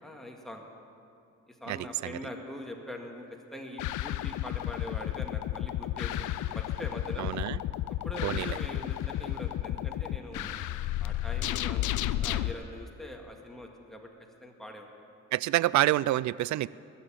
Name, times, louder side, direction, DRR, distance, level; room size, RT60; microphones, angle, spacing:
voice 1, 0.0-0.6 1.5-3.2 3.5-6.3 6.5-7.3 8.0-10.5 11.0-14.1 14.4-14.9, left 1 dB, ahead, 1 dB, 1.9 m, -43 dB
sound 1, 3.8-12.5, left 14 dB, 85° left, 0.5 m, -32 dB
sound 2, 5.4-5.6 6.1-7.0 7.9-8.0 8.4-8.8 9.6-10.0 10.3-10.6, left 4 dB, 50° left, 2.3 m, -46 dB
voice 2, 7.2-7.6 8.2-8.6 15.3-16.7, right 15 dB, 70° right, 20 dB, 0.4 m, -27 dB
20.5 x 7.2 x 8.9 m, 2.7 s
cardioid pair, 90°, 30 cm